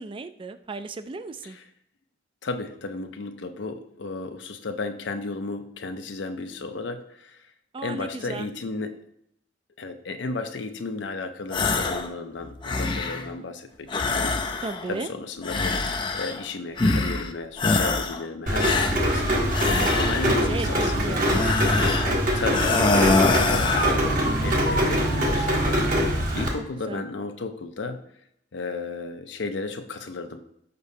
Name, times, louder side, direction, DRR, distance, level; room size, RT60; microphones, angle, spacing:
voice 1, 0.0-1.6 7.7-8.5 14.6-15.1 20.1-20.2 20.5-21.4 24.2-24.6 26.9-27.0, right 3 dB, 30° right, 11 dB, 0.4 m, -35 dB
voice 2, 2.4-7.4 7.8-8.9 9.8-15.8 16.1-21.2 22.3-28.0 28.5-30.4, left 3 dB, 75° left, 6 dB, 0.6 m, -34 dB
sound 1, 11.5-12.1 12.4-13.3 13.9-14.9 15.4-16.4 16.8-17.3 17.6-18.2 18.6-20.4 21.2-22.2 22.5-24.0, left 3 dB, 25° left, 0.5 m, -24 dB
Rain, 18.5-26.5, equal, 50° right, 1.4 m, -23 dB
6.7 x 5.3 x 2.7 m, 0.74 s
head